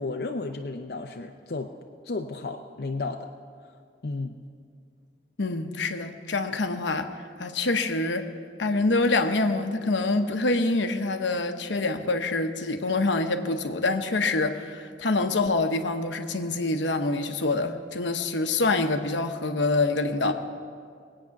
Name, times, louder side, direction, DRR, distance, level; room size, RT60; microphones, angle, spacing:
voice 1, 0.0-1.7 2.0-3.3 3.6-3.7 4.0-4.4 20.2-20.3, left 3 dB, 55° left, 3 dB, 0.6 m, -33 dB
voice 2, 5.4-7.1 7.4-8.3 8.6-20.3, left 2 dB, 80° left, 7 dB, 0.9 m, -26 dB
21.5 x 8.8 x 5.9 m, 2.2 s
head